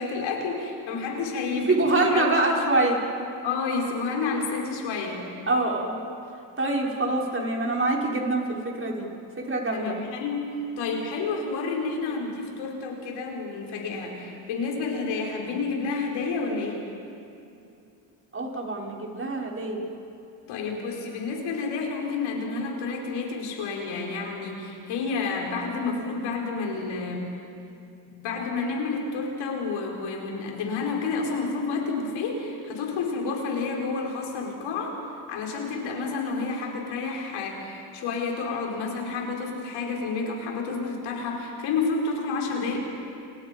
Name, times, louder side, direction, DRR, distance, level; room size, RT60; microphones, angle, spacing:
voice 1, 0.0-2.3 3.4-5.3 9.7-16.8 20.5-27.3 28.0-35.0 35.3-42.8, left 4 dB, 80° left, 0 dB, 5.7 m, -30 dB
voice 2, 1.7-3.0 5.5-6.0 6.6-9.1 9.4-9.9 18.3-19.8, right 2 dB, 25° right, -2 dB, 6.3 m, -25 dB
29.5 x 29.0 x 5.5 m, 2.6 s
supercardioid pair, 75°, 46 cm